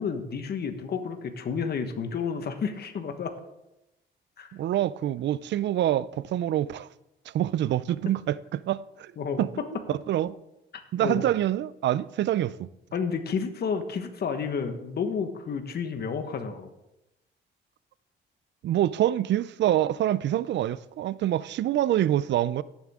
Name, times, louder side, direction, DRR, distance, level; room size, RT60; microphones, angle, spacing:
voice 1, 0.0-3.3 4.4-4.5 9.2-9.4 11.0-11.3 12.9-16.7, left 6 dB, 55° left, 1.3 m, -31 dB
voice 2, 4.5-6.9 7.3-9.1 9.4-9.5 9.9-10.3 10.9-12.7 18.6-22.6, right 12 dB, 65° right, 0.5 m, -26 dB
16.5 x 7.4 x 3.7 m
cardioid pair, 90°, 20 cm